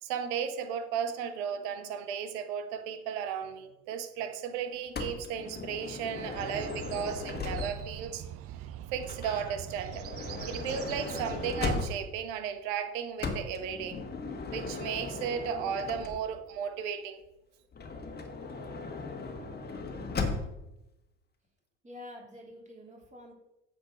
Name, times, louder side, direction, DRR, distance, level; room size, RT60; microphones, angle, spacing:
voice 1, 0.0-8.2 8.9-10.0 10.5-14.0 14.5-17.2, right 8 dB, 75° right, 8 dB, 1.2 m, -35 dB
Motor vehicle (road) / Sliding door, 4.9-8.0 9.0-12.3 13.2-16.5 17.7-20.7, left 4 dB, 30° left, 1.5 m, -37 dB
sound 1, 6.3-12.0, right 12 dB, 40° right, 0.5 m, -43 dB
voice 2, 21.8-23.3, left 1 dB, 20° right, -1 dB, 3.0 m, -47 dB
9.0 x 4.5 x 5.9 m, 0.92 s
supercardioid pair, 85°, 34 cm